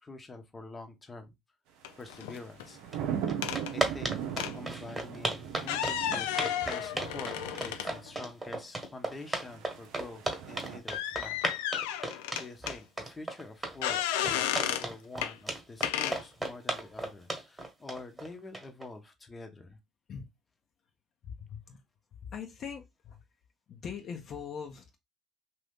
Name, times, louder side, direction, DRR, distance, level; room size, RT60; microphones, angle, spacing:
voice 1, 0.0-1.3 2.0-2.8 3.7-11.4 11.8-19.8, left 3 dB, 20° left, 0.9 m, -46 dB
sound 1, 1.8-2.6 3.4-3.7 4.4-4.6 5.5-8.3 8.8-8.9 10.9-12.8 13.8-14.9 15.2-15.3 15.8-16.2, left 11 dB, 80° left, 0.3 m, -33 dB
sound 2, 1.9-8.1 9.2-10.8, right 9 dB, 75° right, 0.6 m, -39 dB
sound 3, 2.9-3.0 3.3-18.9, right 2 dB, 15° right, 1.3 m, -34 dB
voice 2, 21.2-21.8 22.2-23.2 23.7-25.0, left 7 dB, 50° left, 0.8 m, -41 dB
2.7 x 2.6 x 3.5 m
hypercardioid pair, 70°, 0 cm